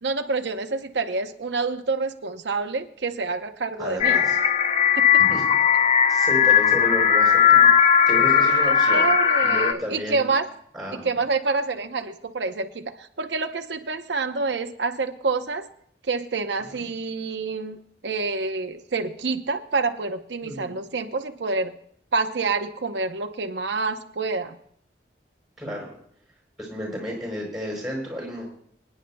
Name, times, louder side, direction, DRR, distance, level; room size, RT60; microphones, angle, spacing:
voice 1, 0.0-4.2 5.0-5.2 8.9-10.4 10.9-15.6 16.1-17.8 18.0-21.7 22.1-24.6, right 3 dB, 80° right, 6 dB, 0.8 m, -27 dB
voice 2, 3.8-4.4 5.2-5.4 6.1-9.1 9.4-10.3 10.7-11.1 16.7-16.9 20.4-20.8 25.6-25.9 26.6-28.5, equal, 5° right, -1 dB, 5.2 m, -32 dB
sound 1, 4.0-9.7, left 8 dB, 35° left, 0.5 m, -18 dB
24.5 x 10.0 x 2.2 m, 0.65 s
head